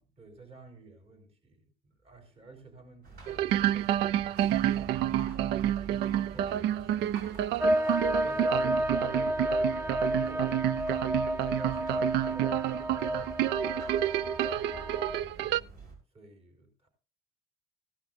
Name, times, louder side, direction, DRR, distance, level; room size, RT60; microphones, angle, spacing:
voice 1, 0.0-4.3 4.7-5.6 6.0-7.5 7.8-11.2 11.5-14.1 14.4-16.9, right 3 dB, 35° right, 4.2 m, -53 dB
sound 1, 3.0-15.9, right 4 dB, 60° right, 6.2 m, -46 dB
sound 2, 3.3-15.6, right 13 dB, 85° right, 0.5 m, -29 dB
sound 3, 7.6-15.2, equal, 15° right, 0.7 m, -31 dB
16.0 x 12.0 x 2.6 m
cardioid pair, 110°, 17 cm